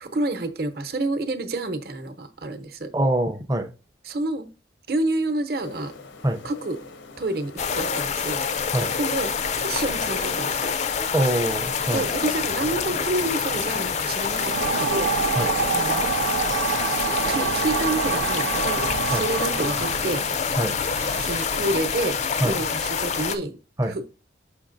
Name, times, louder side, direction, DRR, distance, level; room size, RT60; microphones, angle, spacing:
voice 1, 0.0-2.9 4.0-4.5 4.9-5.9 6.4-6.8 7.2-8.4 9.0-9.3 9.6-10.7 11.9-15.4 15.7-16.1 17.3-20.2 21.2-23.6 23.8-24.0, right 2 dB, 55° right, 0.8 m, -28 dB
voice 2, 2.9-3.7 6.2-6.4 8.7-8.9 11.1-12.1 15.3-15.5 19.1-19.2 20.6-20.8 22.4-22.6 23.8-24.0, right 1 dB, 20° right, 0.5 m, -24 dB
sound 1, 5.6-17.2, left 3 dB, 80° left, 0.8 m, -43 dB
sound 2, 7.6-23.4, left 6 dB, 35° left, 0.4 m, -26 dB
sound 3, 14.3-21.5, right 7 dB, 85° right, 0.3 m, -28 dB
6.7 x 6.0 x 2.6 m
head